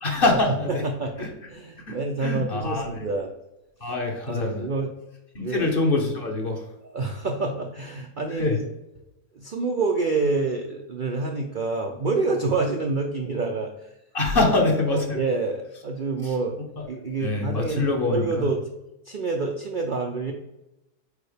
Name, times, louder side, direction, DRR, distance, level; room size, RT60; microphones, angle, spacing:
voice 1, 0.0-0.8 1.2-1.5 1.9-3.0 3.8-4.7 5.3-6.7 8.3-8.6 14.1-15.2 16.2-16.3 16.8-16.9 17.2-18.5, left 2 dB, 40° left, 2 dB, 1.0 m, -25 dB
voice 2, 0.7-1.1 1.5-3.3 4.3-4.9 5.4-5.7 6.9-8.6 9.4-13.7 14.9-16.6 16.9-18.7 19.1-20.3, right 3 dB, 80° right, 2 dB, 0.4 m, -27 dB
4.9 x 4.4 x 4.9 m, 0.92 s
omnidirectional pair, 1.7 m